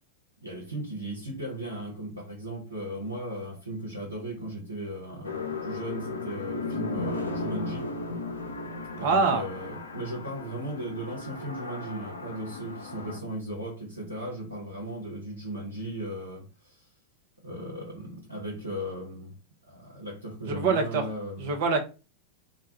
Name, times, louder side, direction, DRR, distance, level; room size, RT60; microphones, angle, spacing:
voice 1, 0.4-7.9 9.0-16.8 17.4-19.4 19.7-21.6, right 1 dB, 90° right, 0.8 m, -37 dB
sound 1, 5.2-13.2, left 3 dB, 75° left, 0.4 m, -35 dB
voice 2, 9.0-9.4 20.5-21.0 21.4-21.8, right 4 dB, 50° right, 0.6 m, -24 dB
2.2 x 2.2 x 2.8 m
figure-of-eight pair, 90°, 0 cm